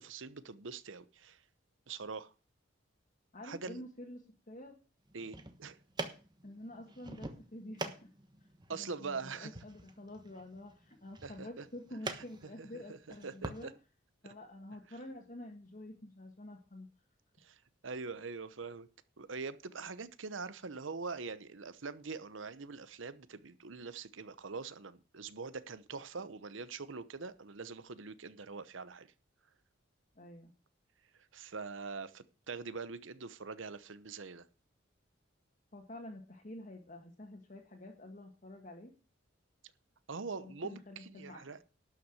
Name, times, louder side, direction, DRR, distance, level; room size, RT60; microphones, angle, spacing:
voice 1, 0.0-1.4 1.9-2.3 3.4-3.8 5.1-5.8 8.7-9.5 11.2-11.7 12.9-13.0 13.2-13.7 17.4-17.6 17.8-18.9 19.2-29.1 31.3-34.5 40.1-41.6, right 4 dB, 75° right, 0.9 m, -43 dB
voice 2, 3.3-4.7 6.4-8.1 8.7-13.7 14.2-16.9 30.1-30.5 35.7-38.9 40.4-41.6, left 1 dB, 40° left, 1.7 m, -48 dB
sound 1, 5.1-13.6, right 2 dB, 20° right, 1.2 m, -46 dB
12.0 x 5.9 x 7.7 m
head